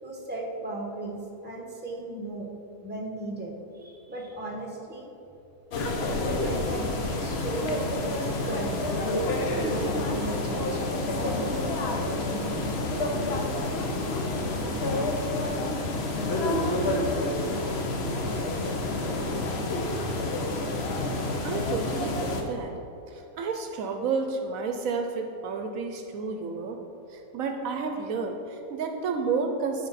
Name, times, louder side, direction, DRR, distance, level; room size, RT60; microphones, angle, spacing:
voice 1, 0.0-2.5 2.8-5.1 6.4-10.8 11.1-12.8, right 2 dB, 10° right, -1 dB, 0.9 m, -36 dB
sound 1, 5.7-22.4, left 2 dB, 55° left, 0.9 m, -28 dB
voice 2, 21.4-22.7 23.1-26.8 27.1-29.9, right 4 dB, 75° right, 5 dB, 1.0 m, -31 dB
11.0 x 4.5 x 4.1 m, 2.8 s
omnidirectional pair, 1.5 m